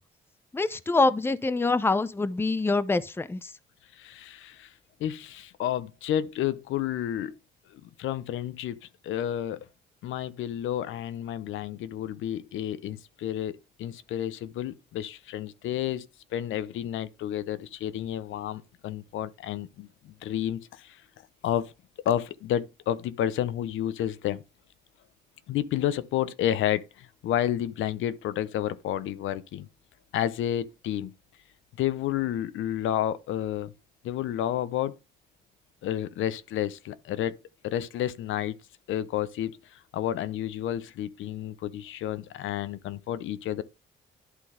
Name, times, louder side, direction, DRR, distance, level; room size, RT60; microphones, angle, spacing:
voice 1, 0.5-3.5, left 3 dB, 10° left, 0.6 m, -25 dB
voice 2, 4.0-4.7 5.0-7.4 8.0-9.6 10.0-16.1 16.3-21.0 21.4-21.7 22.0-24.4 25.5-29.7 30.1-31.1 31.8-33.7 34.0-34.9 35.8-37.3 37.6-38.6 38.9-43.6, left 11 dB, 80° left, 0.7 m, -30 dB
11.0 x 3.9 x 4.9 m
cardioid pair, 90°, 20 cm